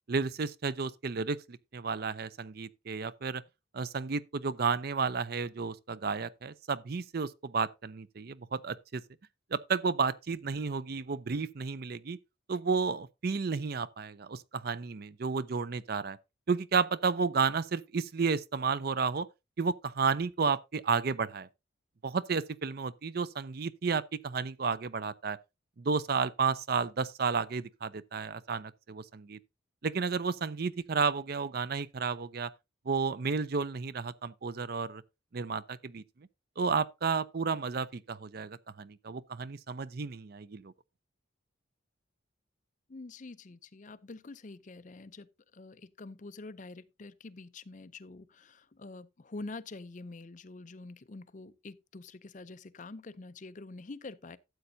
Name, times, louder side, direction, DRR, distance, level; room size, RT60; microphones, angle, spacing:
voice 1, 0.1-3.4 3.7-9.0 9.5-12.2 12.5-16.2 16.5-19.3 19.6-21.5 22.0-25.4 25.8-29.4 29.8-32.5 32.9-35.0 35.3-36.0 36.6-40.7, right 5 dB, 50° right, 0.5 m, -32 dB
voice 2, 42.9-54.4, left 3 dB, 40° left, 0.5 m, -46 dB
12.5 x 7.9 x 2.7 m
head